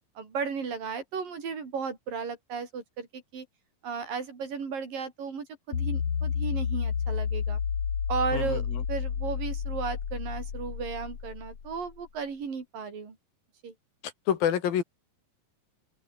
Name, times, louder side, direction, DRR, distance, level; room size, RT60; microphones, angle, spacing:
voice 1, 0.2-3.5 3.8-7.6 8.1-13.2 13.6-13.7, right 5 dB, 70° right, 6.1 m, -35 dB
sound 1, 5.7-12.0, left 7 dB, 45° left, 3.2 m, -31 dB
voice 2, 8.3-8.8 14.0-14.8, left 9 dB, 80° left, 4.0 m, -28 dB
open air
omnidirectional pair, 4.2 m